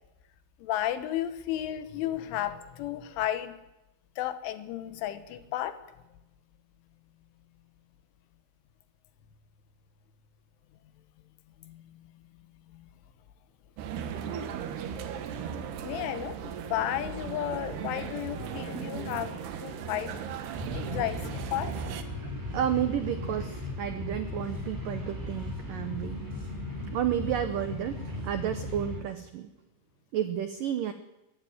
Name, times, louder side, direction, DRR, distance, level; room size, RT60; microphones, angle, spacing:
voice 1, 0.6-3.6 4.2-5.8 11.6-12.0 12.7-12.9 14.9-20.2 20.7-21.7, left 12 dB, 85° left, 11 dB, 3.8 m, -33 dB
sound 1, 13.8-22.0, right 8 dB, 65° right, 3.2 m, -37 dB
sound 2, 20.5-29.0, left 2 dB, 5° right, 4.5 m, -37 dB
voice 2, 22.5-26.2 26.9-29.5 30.1-30.9, right 10 dB, 85° right, 9 dB, 1.9 m, -31 dB
22.5 x 14.5 x 9.4 m, 0.96 s
omnidirectional pair, 5.4 m